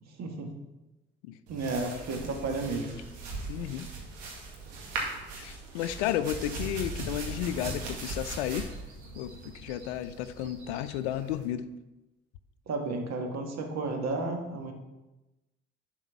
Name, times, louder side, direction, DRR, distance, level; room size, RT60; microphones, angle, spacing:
voice 1, 0.2-0.5 1.5-3.0 12.7-14.7, right 3 dB, 50° right, 3 dB, 1.8 m, -32 dB
sound 1, 1.5-11.5, right 3 dB, 70° right, 2.1 m, -39 dB
voice 2, 3.5-3.9 5.4-8.7 9.1-11.7, left 11 dB, 70° left, 13 dB, 0.6 m, -33 dB
11.0 x 4.6 x 5.8 m, 1.0 s
figure-of-eight pair, 50°, 34 cm